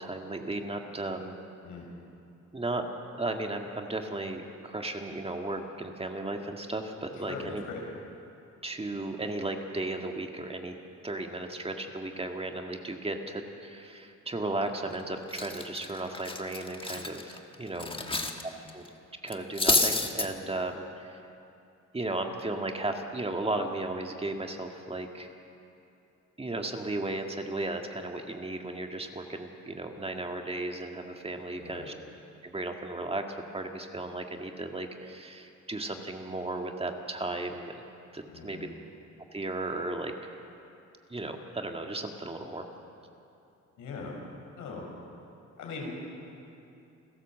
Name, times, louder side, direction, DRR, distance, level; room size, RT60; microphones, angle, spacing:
voice 1, 0.0-1.4 2.5-2.8 3.1-7.6 8.6-10.8 11.0-17.9 18.7-18.8 19.2-21.2 21.9-25.3 26.4-31.9 32.4-37.8 38.1-38.7 39.3-40.1 41.1-42.7, right 2 dB, 20° right, 3 dB, 1.8 m, -35 dB
voice 2, 7.3-7.8 17.7-18.2 31.6-31.9 38.3-38.7 43.8-44.1 44.5-44.8 45.6-45.9, left 4 dB, 80° left, -1 dB, 6.1 m, -40 dB
Cutlery silverware, 14.7-15.0 15.3-18.4 18.7-18.9 19.3-20.3, left 2 dB, 15° left, 1.5 m, -29 dB
28.5 x 13.0 x 7.5 m, 2.7 s
cardioid pair, 90°, 30 cm